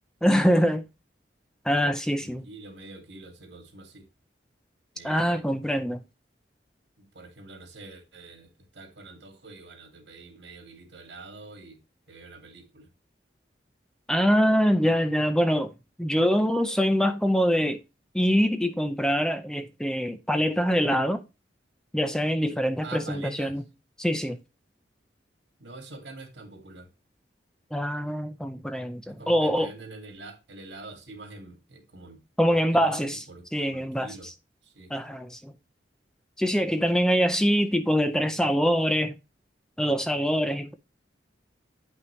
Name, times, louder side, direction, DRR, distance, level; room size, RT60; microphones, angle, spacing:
voice 1, 0.2-0.9 1.6-2.4 5.0-6.0 14.1-15.7 16.0-17.8 18.1-21.2 21.9-23.6 24.0-24.4 27.7-29.7 32.4-33.2 33.5-34.3 34.9-35.5 36.4-39.1 39.8-40.7, equal, 5° left, 0.5 m, -24 dB
voice 2, 2.2-4.1 4.9-5.5 7.0-11.8 12.1-12.9 22.8-23.6 25.6-26.9 29.1-32.2 32.5-34.3 34.6-34.9, right 2 dB, 75° right, 2.2 m, -45 dB
9.2 x 5.8 x 3.1 m
head